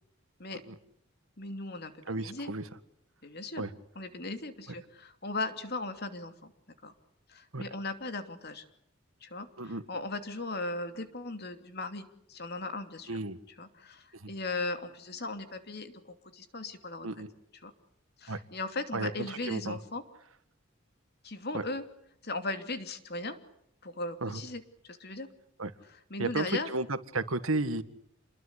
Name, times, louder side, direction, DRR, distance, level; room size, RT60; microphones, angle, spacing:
voice 1, 1.4-2.5 3.2-3.6 3.9-6.5 6.8-6.9 7.3-8.6 9.2-13.2 13.6-15.9 16.3-17.1 17.6-17.7 18.2-20.0 21.2-21.8 22.2-23.4 23.8-24.6 24.9-25.3 25.9-26.7, left 2 dB, 50° left, 8 dB, 2.8 m, -37 dB
voice 2, 2.1-2.6 3.6-3.7 7.5-7.7 9.6-9.8 13.1-13.4 14.1-14.3 17.0-17.3 18.3-18.4 18.9-19.8 21.5-21.6 24.2-24.4 25.6-25.7 26.2-27.8, right 2 dB, 90° right, 11 dB, 1.9 m, -33 dB
28.5 x 22.0 x 8.5 m, 0.74 s
head